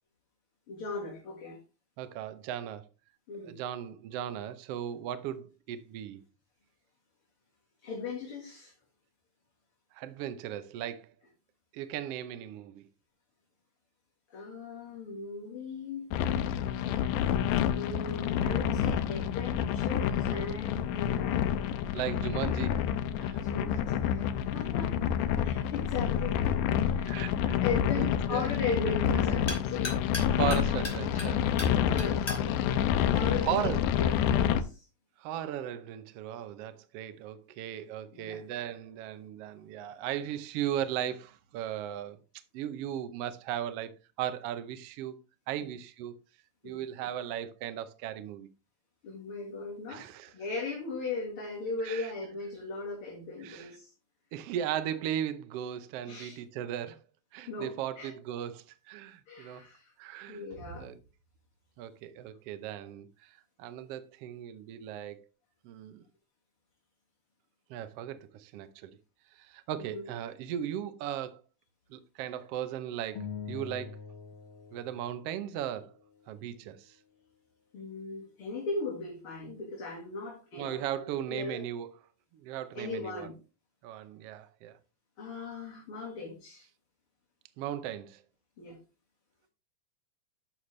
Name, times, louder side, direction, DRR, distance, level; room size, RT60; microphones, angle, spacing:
voice 1, 0.7-1.6 3.3-3.5 7.8-8.7 14.3-16.1 17.7-21.6 23.4-24.9 25.4-26.4 26.9-27.3 27.6-29.9 31.8-32.6 33.1-33.7 34.0-34.9 38.1-38.5 45.6-45.7 46.6-46.8 49.0-50.1 50.3-53.9 56.1-56.4 57.5-58.1 59.3-59.9 60.3-60.9 69.8-70.0 77.7-80.8 81.3-81.6 82.7-83.3 85.2-86.7 88.6-88.8, left 4 dB, 45° left, 2.6 m, -38 dB
voice 2, 2.0-2.8 3.4-6.2 9.9-11.1 11.7-12.9 16.9-17.0 21.9-22.8 23.2-23.4 27.1-27.6 28.0-28.4 30.4-31.4 33.4-33.8 35.2-42.2 42.5-45.2 45.5-46.1 46.6-48.5 49.9-50.3 51.8-52.1 53.4-53.7 54.3-57.0 57.3-59.6 60.0-61.0 61.8-63.3 63.6-65.2 65.6-66.1 67.7-69.0 69.4-71.4 71.9-74.0 74.7-75.9 76.3-77.0 80.5-81.9 82.3-83.3 83.8-84.8 87.6-88.2, right 10 dB, 85° right, 1.3 m, -37 dB
sound 1, 16.1-34.6, left 9 dB, 80° left, 2.2 m, -28 dB
sound 2, 29.5-34.0, left 2 dB, 15° left, 2.9 m, -43 dB
sound 3, 73.2-75.8, left 6 dB, 65° left, 1.3 m, -43 dB
11.5 x 6.6 x 3.2 m
omnidirectional pair, 3.8 m